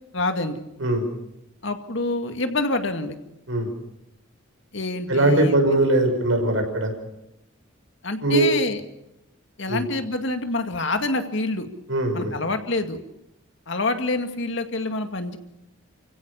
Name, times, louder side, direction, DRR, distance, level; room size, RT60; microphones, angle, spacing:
voice 1, 0.1-0.6 1.6-3.1 4.7-5.6 8.0-8.8 9.6-11.7 12.1-13.0 13.7-15.4, left 2 dB, 65° left, 7 dB, 2.2 m, -26 dB
voice 2, 5.1-6.9 8.2-8.5 9.7-9.8 11.9-12.3, right 2 dB, 75° right, 4 dB, 5.9 m, -20 dB
29.0 x 16.5 x 7.0 m, 0.88 s
head